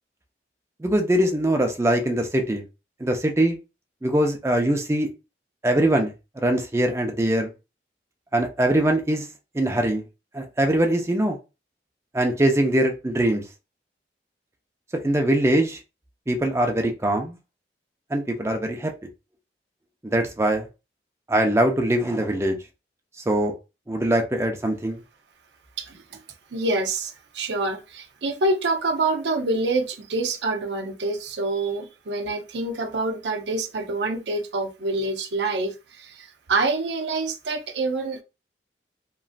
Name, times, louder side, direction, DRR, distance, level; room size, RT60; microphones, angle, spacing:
voice 1, 0.8-2.6 3.0-3.6 4.0-5.1 5.6-6.1 6.4-7.5 8.3-9.3 9.5-10.0 10.3-11.4 12.1-13.4 15.0-15.8 16.3-17.4 18.1-18.9 20.0-20.7 21.3-22.6 23.3-23.5 23.9-25.0, right 1 dB, 15° right, 0.5 m, -22 dB
voice 2, 25.8-26.2 26.5-38.2, right 2 dB, 80° right, 0.6 m, -26 dB
3.0 x 2.4 x 2.4 m
head